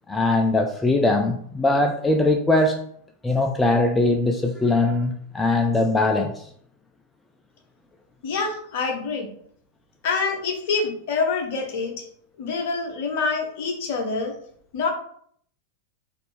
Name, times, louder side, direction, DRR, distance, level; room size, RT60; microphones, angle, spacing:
voice 1, 0.1-2.8 3.2-6.4, left 2 dB, 10° left, 3 dB, 0.4 m, -21 dB
voice 2, 8.2-9.3 10.0-12.0 12.4-14.3 14.7-14.9, left 4 dB, 50° left, 3 dB, 0.9 m, -26 dB
4.1 x 2.7 x 3.2 m, 0.63 s
figure-of-eight pair, 90°, 0 cm